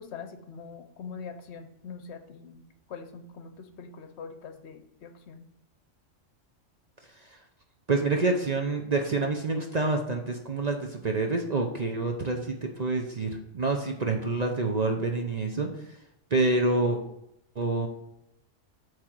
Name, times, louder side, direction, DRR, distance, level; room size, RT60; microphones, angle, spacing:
voice 1, 0.0-2.6 2.9-5.4, left 5 dB, 65° left, 7 dB, 0.9 m, -43 dB
voice 2, 7.9-15.7 16.3-17.0 17.6-17.9, right 3 dB, 40° right, 3 dB, 0.6 m, -27 dB
8.5 x 3.2 x 6.0 m, 0.80 s
omnidirectional pair, 1.3 m